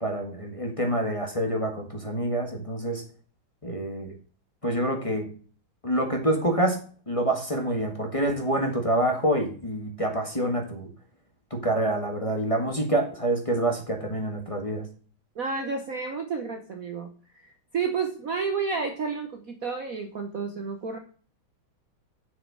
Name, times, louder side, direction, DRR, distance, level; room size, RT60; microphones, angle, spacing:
voice 1, 0.0-3.0 3.6-4.1 4.6-5.3 5.8-6.8 7.1-10.9 11.5-14.8, right 1 dB, 15° left, 2 dB, 1.7 m, -27 dB
voice 2, 15.4-17.1 17.4-21.0, right 5 dB, 50° right, 5 dB, 1.2 m, -31 dB
7.5 x 6.5 x 6.3 m, 0.41 s
omnidirectional pair, 2.3 m